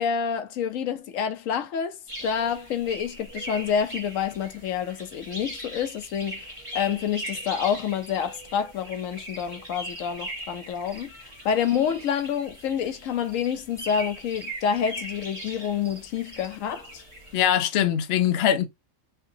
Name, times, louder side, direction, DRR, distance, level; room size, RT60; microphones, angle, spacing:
voice 1, 0.0-6.4 6.7-17.0, left 8 dB, 80° left, 1.0 m, -28 dB
sound 1, 2.1-17.5, right 1 dB, 25° right, 1.5 m, -40 dB
voice 2, 17.3-18.7, left 10 dB, 60° left, 0.7 m, -22 dB
4.5 x 2.9 x 2.7 m
omnidirectional pair, 1.4 m